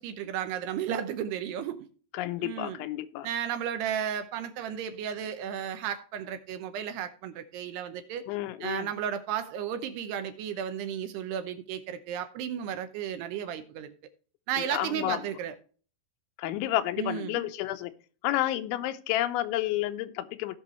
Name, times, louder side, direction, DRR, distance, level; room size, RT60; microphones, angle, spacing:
voice 1, 0.0-1.9 2.4-2.8 3.2-8.2 8.6-13.9 14.5-15.5 17.0-17.4, right 9 dB, 75° right, 2.6 m, -34 dB
voice 2, 2.1-3.3 8.3-8.9 14.6-15.2 16.4-17.9 18.2-20.6, left 14 dB, 85° left, 3.2 m, -30 dB
17.5 x 6.0 x 3.1 m
omnidirectional pair, 5.3 m